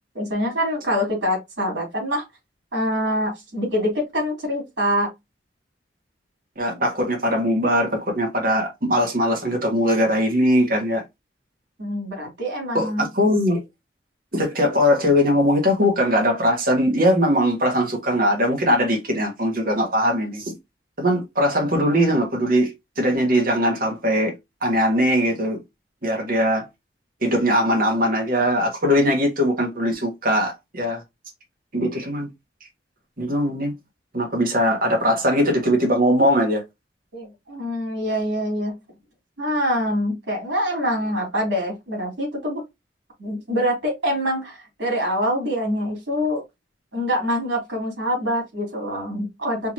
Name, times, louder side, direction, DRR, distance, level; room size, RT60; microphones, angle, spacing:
voice 1, 0.1-2.2 2.7-5.1 11.8-13.1 37.1-38.7 39.4-42.6 43.2-46.4 46.9-49.7, equal, 80° right, 3.4 m, -25 dB
voice 2, 6.6-11.0 12.7-13.6 14.3-20.5 21.0-24.4 24.6-25.6 26.0-26.7 27.2-31.0 31.7-32.3 33.2-33.7 34.1-36.6, equal, 55° right, 1.6 m, -20 dB
5.4 x 3.0 x 2.8 m
head